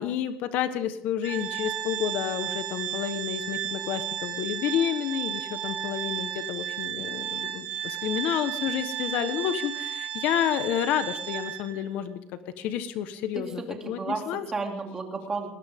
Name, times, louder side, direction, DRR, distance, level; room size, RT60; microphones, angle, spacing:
voice 1, 0.0-12.2 12.6-14.5, left 10 dB, 65° left, 11 dB, 1.3 m, -30 dB
Organ, 1.2-11.9, right 11 dB, 55° right, 3.8 m, -33 dB
voice 2, 13.3-15.5, right 3 dB, 20° right, 2 dB, 2.9 m, -33 dB
19.5 x 18.5 x 3.7 m, 0.72 s
cardioid pair, 150°, 3 cm